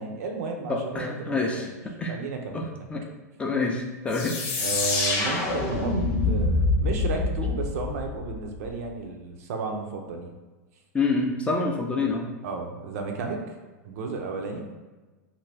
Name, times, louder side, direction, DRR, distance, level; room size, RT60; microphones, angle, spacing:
voice 1, 0.0-1.8 2.1-2.7 4.6-6.0 6.3-10.3 12.4-13.4 13.8-14.6, right 4 dB, 65° right, 2 dB, 0.5 m, -33 dB
voice 2, 0.7-2.2 2.5-3.0 3.4-4.4 10.9-12.3, left 3 dB, 15° left, 1 dB, 0.4 m, -27 dB
sound 1, 4.1-8.7, left 3 dB, 50° left, 0.8 m, -26 dB
2.6 x 2.5 x 3.2 m, 1.2 s
hypercardioid pair, 115°, 9 cm